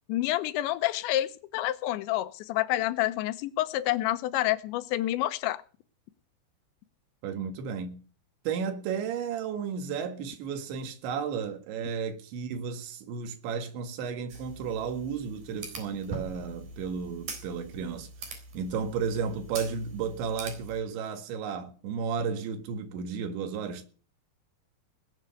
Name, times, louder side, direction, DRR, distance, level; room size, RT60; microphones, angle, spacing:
voice 1, 0.1-5.6, left 15 dB, 80° left, 3.2 m, -28 dB
voice 2, 7.2-8.0 8.5-23.9, right 6 dB, 80° right, 4.2 m, -33 dB
sound 1, 14.3-20.8, right 3 dB, 50° right, 5.2 m, -43 dB
19.5 x 8.0 x 6.8 m
omnidirectional pair, 5.2 m